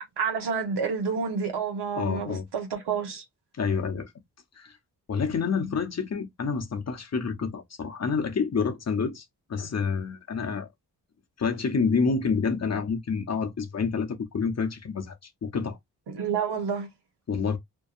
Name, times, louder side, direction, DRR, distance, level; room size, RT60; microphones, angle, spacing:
voice 1, 0.2-3.2 16.1-16.9, right 6 dB, 75° right, 1.0 m, -29 dB
voice 2, 2.0-2.4 3.6-4.1 4.6-4.7 5.1-9.2 9.5-10.7 11.4-15.1 15.4-15.8 17.3-17.6, left 5 dB, 40° left, 0.7 m, -28 dB
2.6 x 2.2 x 2.4 m
cardioid pair, 45°, 40 cm